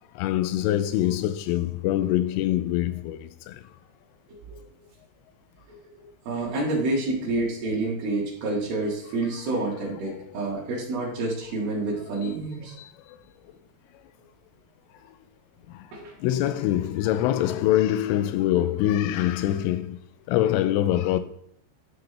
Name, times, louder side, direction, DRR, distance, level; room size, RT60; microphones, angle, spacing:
voice 1, 0.2-3.6 10.1-10.3 12.8-12.9 16.2-20.0 20.3-21.2, left 13 dB, 85° left, 3.0 m, -24 dB
voice 2, 6.3-12.7 15.9-16.1, right 2 dB, 55° right, 3.4 m, -28 dB
13.0 x 5.9 x 3.3 m
omnidirectional pair, 5.7 m